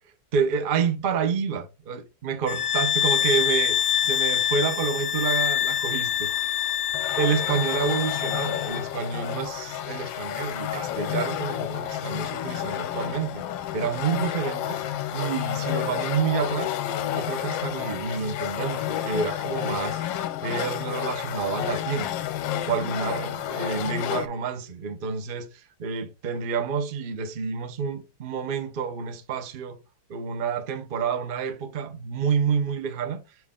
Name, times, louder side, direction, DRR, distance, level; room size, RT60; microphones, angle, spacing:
voice 1, 0.3-6.3 7.2-13.5 13.7-14.8 15.1-16.7 17.1-20.0 20.4-22.1 22.7-29.8 30.1-33.2, right 6 dB, 60° right, 0.5 m, -28 dB
sound 1, 2.4-8.9, left 11 dB, 50° left, 1.1 m, -25 dB
sound 2, 6.9-24.3, left 11 dB, 70° left, 1.2 m, -30 dB
6.3 x 4.4 x 3.7 m
omnidirectional pair, 2.4 m